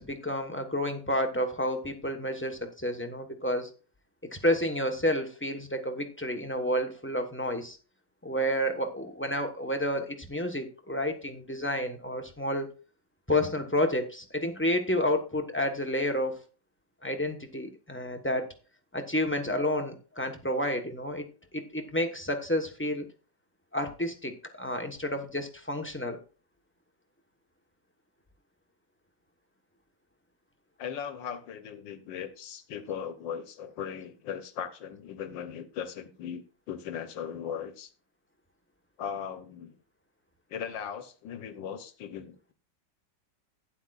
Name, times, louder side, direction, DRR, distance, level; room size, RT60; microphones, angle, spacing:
voice 1, 0.0-3.7 4.3-7.8 8.2-12.7 13.3-16.4 17.0-18.5 18.9-21.3 21.5-23.1 23.7-26.2, left 1 dB, 10° left, 4 dB, 0.8 m, -30 dB
voice 2, 30.8-37.9 39.0-39.8 40.5-42.5, left 8 dB, 80° left, 10 dB, 1.6 m, -38 dB
12.0 x 10.0 x 2.4 m, 0.36 s
omnidirectional pair, 2.0 m